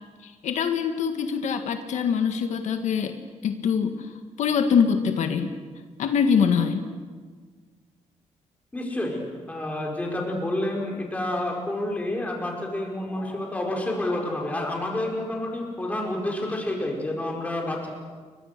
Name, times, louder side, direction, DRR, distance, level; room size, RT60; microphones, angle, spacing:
voice 1, 0.2-3.2 3.4-4.1 4.4-5.5 6.0-6.8, left 6 dB, 80° left, 6 dB, 1.8 m, -24 dB
voice 2, 8.7-17.9, left 1 dB, 10° left, 0 dB, 5.0 m, -29 dB
30.0 x 23.5 x 6.8 m, 1.5 s
wide cardioid pair, 180°, 12 cm